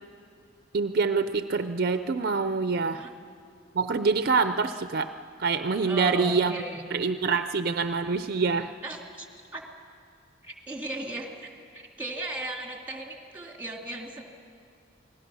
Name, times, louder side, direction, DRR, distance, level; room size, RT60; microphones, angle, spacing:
voice 1, 0.7-3.1 3.7-5.1 5.4-6.5 6.9-8.7, right 4 dB, 50° right, 10 dB, 0.5 m, -25 dB
voice 2, 5.8-6.8 8.8-9.3 9.5-9.6 10.4-14.2, right 1 dB, 10° right, 1 dB, 2.5 m, -37 dB
28.5 x 20.0 x 6.2 m, 2.5 s
head